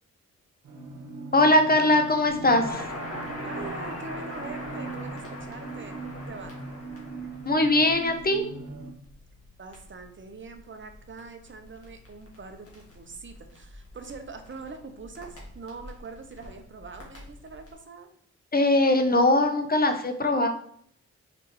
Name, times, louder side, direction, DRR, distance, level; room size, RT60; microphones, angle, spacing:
sound 1, 0.6-8.9, right 3 dB, 75° right, 1.1 m, -40 dB
voice 1, 1.3-2.9 7.4-8.4 18.5-20.5, left 1 dB, 30° left, 6 dB, 0.7 m, -21 dB
Crackle, 2.3-17.7, left 1 dB, 50° left, 1.7 m, -43 dB
voice 2, 3.4-6.6 9.6-18.1, right 4 dB, 40° right, 6 dB, 0.7 m, -43 dB
4.9 x 3.5 x 3.0 m, 0.66 s
cardioid pair, 60°, 30 cm